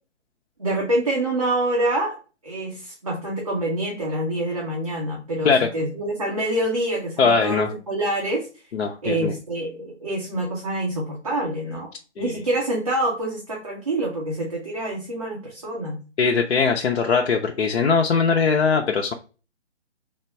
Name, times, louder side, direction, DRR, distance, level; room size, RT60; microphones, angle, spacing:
voice 1, 0.6-2.2 2.4-8.5 9.0-11.9 12.2-16.0, right 1 dB, 30° right, -3 dB, 0.6 m, -26 dB
voice 2, 7.2-7.7 8.7-9.3 12.2-12.3 16.2-19.1, left 5 dB, 70° left, 3 dB, 0.5 m, -20 dB
3.4 x 2.1 x 4.3 m, 0.35 s
hypercardioid pair, 165°, 36 cm